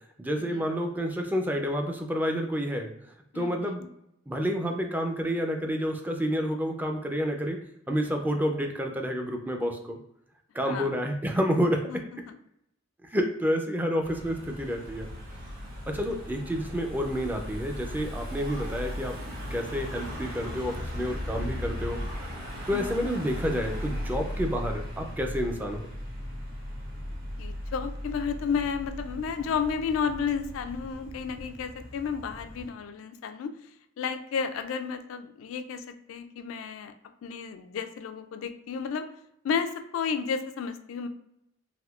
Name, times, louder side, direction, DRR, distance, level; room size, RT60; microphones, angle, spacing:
voice 1, 0.2-2.9 3.3-3.8 4.3-7.6 7.9-10.0 10.5-12.0 13.0-15.1 15.9-19.2 19.5-22.0 22.7-25.9, equal, 10° right, 3 dB, 0.3 m, -29 dB
voice 2, 3.3-3.9 10.6-11.0 11.9-12.4 22.7-23.1 27.4-33.5 34.0-36.9 37.2-39.1 39.4-41.1, left 6 dB, 80° left, 9 dB, 0.3 m, -32 dB
Car passing by / Engine, 14.0-32.7, equal, 45° right, 1.2 m, -37 dB
Motor vehicle (road) / Siren, 15.3-15.7 17.1-17.6 18.4-18.8 20.0-20.5 21.9-22.4, right 1 dB, 75° right, 1.0 m, -49 dB
3.5 x 2.6 x 2.3 m, 0.80 s
head